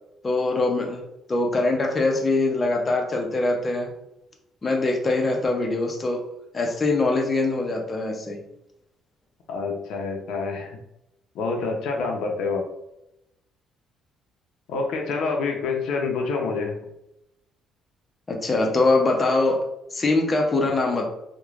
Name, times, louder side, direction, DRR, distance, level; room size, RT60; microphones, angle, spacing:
voice 1, 0.2-1.0 1.3-3.9 4.6-6.2 6.5-8.4 18.3-19.6 19.9-21.1, left 2 dB, 25° left, 1 dB, 0.5 m, -23 dB
voice 2, 9.5-10.8 11.3-12.6 14.7-16.8, left 4 dB, 80° left, 1 dB, 0.5 m, -27 dB
3.1 x 2.1 x 2.4 m, 0.86 s
cardioid pair, 110°, 0 cm